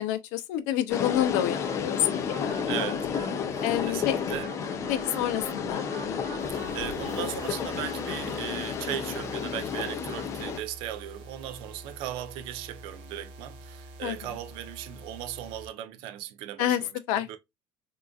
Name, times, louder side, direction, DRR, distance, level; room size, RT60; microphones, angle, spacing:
voice 1, 0.0-2.6 3.6-4.2 4.9-5.8 14.0-14.3 16.6-16.8 17.1-17.3, left 12 dB, 80° left, 0.6 m, -28 dB
sound 1, 0.9-10.6, left 7 dB, 30° left, 0.4 m, -32 dB
sound 2, 1.5-8.4, right 5 dB, 40° right, 0.8 m, -43 dB
voice 2, 2.7-3.1 3.5-4.5 6.5-16.9 17.1-17.4, right 12 dB, 60° right, 0.5 m, -37 dB
sound 3, 6.4-15.7, right 1 dB, 80° right, 1.1 m, -47 dB
3.7 x 2.4 x 2.3 m
cardioid pair, 150°, 10 cm